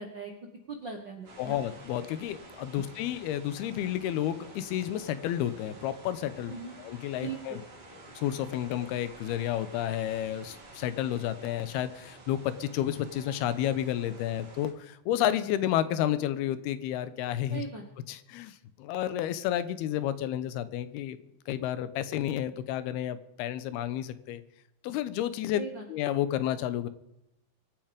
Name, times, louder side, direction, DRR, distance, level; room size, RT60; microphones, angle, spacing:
voice 1, 0.0-1.6 2.8-2.9 6.5-6.8 7.2-7.6 17.5-17.8 25.5-25.8, right 4 dB, 80° right, 2 dB, 1.0 m, -40 dB
sound 1, 1.2-14.7, right 2 dB, 60° right, 5.8 m, -50 dB
voice 2, 1.4-6.5 6.8-7.6 8.2-17.6 18.1-21.2 21.5-24.4 24.8-25.6 25.9-26.9, left 11 dB, 90° left, 14 dB, 2.9 m, -31 dB
24.0 x 9.0 x 5.1 m, 0.88 s
omnidirectional pair, 4.4 m